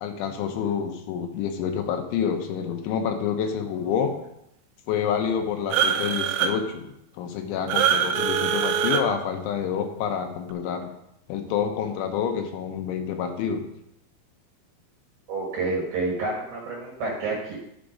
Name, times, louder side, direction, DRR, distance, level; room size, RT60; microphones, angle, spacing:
voice 1, 0.0-4.1 4.9-6.9 7.2-10.9 11.3-13.7, left 7 dB, 80° left, 5 dB, 3.3 m, -28 dB
sound 1, 5.7-6.5 7.7-9.0, right 8 dB, 85° right, 2.9 m, -23 dB
voice 2, 15.3-17.6, right 3 dB, 60° right, -1 dB, 3.0 m, -29 dB
11.5 x 6.0 x 5.1 m, 0.78 s
omnidirectional pair, 5.5 m